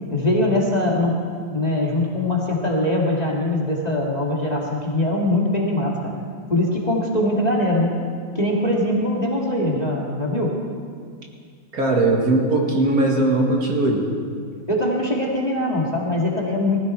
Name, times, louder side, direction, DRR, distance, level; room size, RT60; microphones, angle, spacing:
voice 1, 0.1-1.2 1.5-6.1 6.5-7.9 8.4-10.5 14.7-16.8, left 1 dB, 25° left, -3 dB, 2.2 m, -22 dB
voice 2, 11.7-14.1, right 2 dB, 60° right, 0 dB, 2.3 m, -19 dB
20.0 x 15.0 x 4.4 m, 2.1 s
omnidirectional pair, 1.8 m